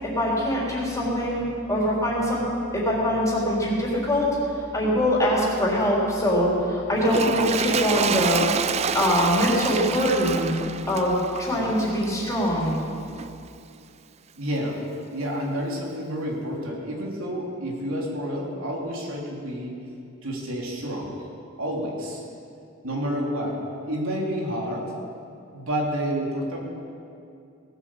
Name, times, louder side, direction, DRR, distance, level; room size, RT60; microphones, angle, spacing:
voice 1, 0.0-2.4 2.7-8.5 8.9-10.5 10.9-12.7, equal, 15° left, -5 dB, 3.8 m, -23 dB
Toilet flush, 7.0-12.5 13.2-13.3, right 6 dB, 30° right, 0.4 m, -28 dB
voice 2, 14.4-14.8 15.1-19.8 20.2-21.2 21.6-22.2 22.8-24.9 25.5-26.6, equal, 80° right, -2 dB, 3.0 m, -29 dB
18.5 x 8.2 x 7.5 m, 2.5 s
head